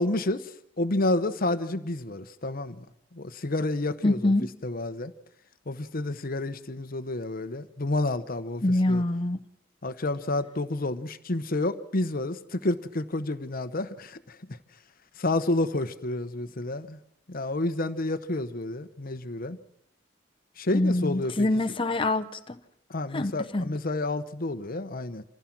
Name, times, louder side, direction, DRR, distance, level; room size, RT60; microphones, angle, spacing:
voice 1, 0.0-2.8 3.1-4.3 4.6-5.1 5.7-9.0 9.8-14.6 15.2-17.0 17.3-19.6 20.6-21.5 22.9-25.2, left 2 dB, 50° left, 1.0 m, -30 dB
voice 2, 4.0-4.5 8.6-9.4 20.7-22.6 23.1-23.7, left 2 dB, 30° left, 1.0 m, -25 dB
27.0 x 15.5 x 6.1 m
head